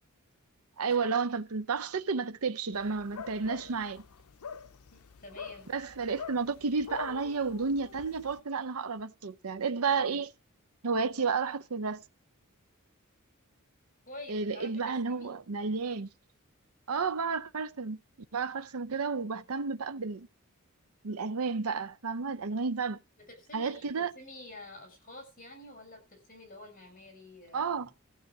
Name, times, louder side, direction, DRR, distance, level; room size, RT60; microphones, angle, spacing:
voice 1, 0.8-4.0 5.7-10.3 10.8-12.0 14.3-16.1 16.9-18.0 18.3-20.3 21.0-23.0 23.5-24.1 27.5-27.9, right 5 dB, 75° right, 0.7 m, -31 dB
sound 1, 2.7-8.4, left 6 dB, 90° left, 0.6 m, -45 dB
voice 2, 4.9-5.7 9.8-10.2 14.1-15.4 23.3-27.9, left 2 dB, 40° left, 6.6 m, -48 dB
14.5 x 6.5 x 7.3 m
head